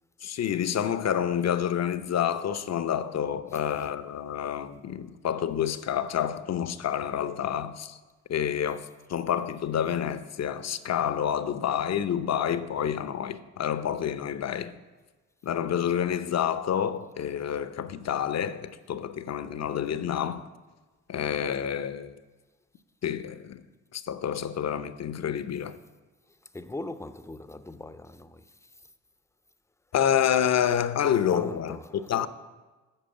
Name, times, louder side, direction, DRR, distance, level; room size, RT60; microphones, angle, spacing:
voice 1, 0.2-8.0 8.3-14.7 15.4-20.5 21.1-22.1 23.0-23.6 23.9-25.8 29.9-32.3, left 9 dB, 45° left, 0.8 m, -28 dB
voice 2, 26.3-28.7 31.0-32.1, left 2 dB, 10° left, 0.7 m, -41 dB
8.8 x 6.8 x 7.0 m
hypercardioid pair, 45°, 37 cm